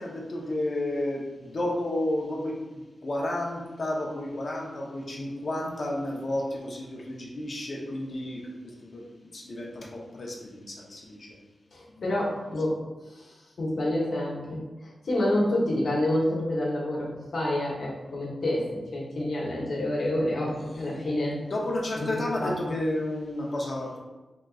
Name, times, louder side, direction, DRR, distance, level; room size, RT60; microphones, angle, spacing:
voice 1, 0.0-9.0 9.3-11.4 11.9-12.0 21.4-24.0, left 1 dB, 60° left, -2 dB, 0.8 m, -32 dB
voice 2, 11.7-12.7 13.1-17.1 17.3-18.6 18.9-21.4 22.0-22.1 22.4-22.8, left 1 dB, 80° left, -5 dB, 1.1 m, -28 dB
3.8 x 3.5 x 2.4 m, 1.2 s
cardioid pair, 70°, 0 cm